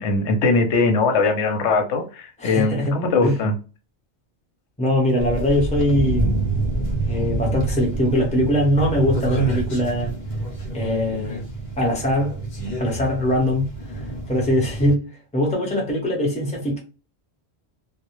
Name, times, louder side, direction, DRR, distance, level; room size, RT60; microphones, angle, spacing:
voice 1, 0.0-3.5, left 3 dB, 85° left, 0.9 m, -20 dB
voice 2, 2.4-3.0 3.2-3.4 4.8-6.3 7.1-10.1 10.7-11.4 11.8-12.3 12.8-13.7 14.3-15.0 15.3-16.8, left 1 dB, 5° left, 0.7 m, -21 dB
sound 1, 5.2-14.9, right 2 dB, 50° left, 0.7 m, -27 dB
2.1 x 2.1 x 2.9 m
omnidirectional pair, 1.1 m